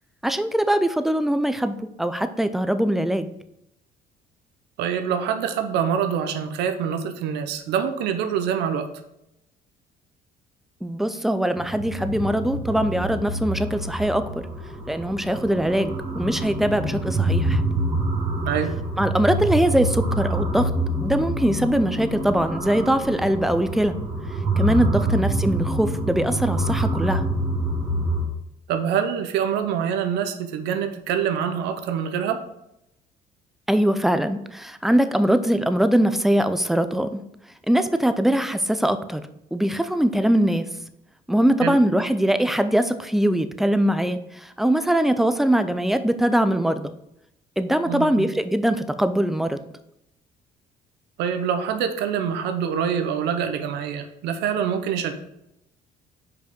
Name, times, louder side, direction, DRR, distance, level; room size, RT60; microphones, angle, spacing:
voice 1, 0.2-3.3 10.8-14.4 14.9-17.6 19.0-20.7 21.0-23.9 24.6-27.2 33.7-37.2 37.7-39.2 39.5-40.7 41.3-44.2 44.6-46.9 47.6-49.6, right 1 dB, ahead, 10 dB, 0.4 m, -22 dB
voice 2, 4.8-8.9 18.5-18.8 25.0-25.1 28.7-32.4 41.6-41.8 47.9-48.3 51.2-55.1, right 8 dB, 85° right, 8 dB, 0.7 m, -25 dB
sound 1, 11.6-28.2, right 1 dB, 40° right, 2.3 m, -26 dB
5.1 x 4.8 x 5.2 m, 0.82 s
cardioid pair, 110°, 17 cm